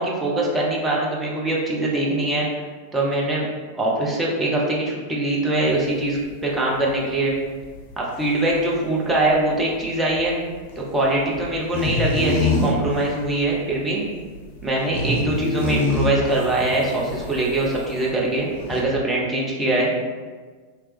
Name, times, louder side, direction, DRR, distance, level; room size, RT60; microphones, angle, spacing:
voice 1, 0.0-2.5 2.9-3.5 3.8-7.3 8.0-10.4 10.8-14.0 14.6-19.9, right 2 dB, 15° right, -4 dB, 0.8 m, -22 dB
sound 1, 5.7-18.2 18.4-18.8, left 2 dB, 50° left, 0.6 m, -27 dB
3.2 x 2.9 x 3.3 m, 1.5 s
figure-of-eight pair, 90°, 0 cm